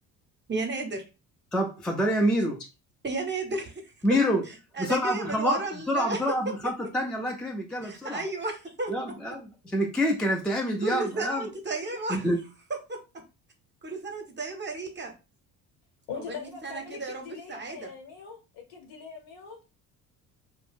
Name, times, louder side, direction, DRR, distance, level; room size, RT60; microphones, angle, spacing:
voice 1, 0.5-1.0 3.0-4.2 4.5-6.7 7.8-9.2 10.8-12.3 12.7-13.2 13.8-15.1 16.1-17.9, right 3 dB, 25° right, 0.8 m, -33 dB
voice 2, 1.5-2.6 4.0-4.4 4.8-5.6 5.9-8.2 8.9-11.4 12.1-12.4, equal, ahead, 0.3 m, -27 dB
voice 3, 16.1-19.6, left 6 dB, 65° left, 1.1 m, -42 dB
2.3 x 2.1 x 3.3 m
hypercardioid pair, 55°, 48 cm